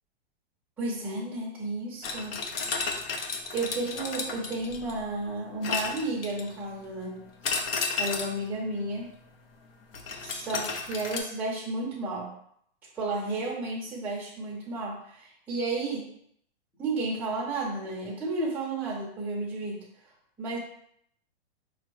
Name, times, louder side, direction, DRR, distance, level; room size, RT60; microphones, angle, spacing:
voice 1, 0.8-2.3 3.2-7.3 8.0-9.1 10.2-12.4 12.9-16.1 16.8-19.8 20.4-20.6, right 2 dB, 5° right, -3 dB, 0.5 m, -32 dB
sound 1, 2.0-5.0 5.6-6.6 7.4-8.4 9.9-11.2, left 4 dB, 70° left, 0.6 m, -33 dB
4.7 x 2.1 x 3.0 m, 0.69 s
supercardioid pair, 165°, 30 cm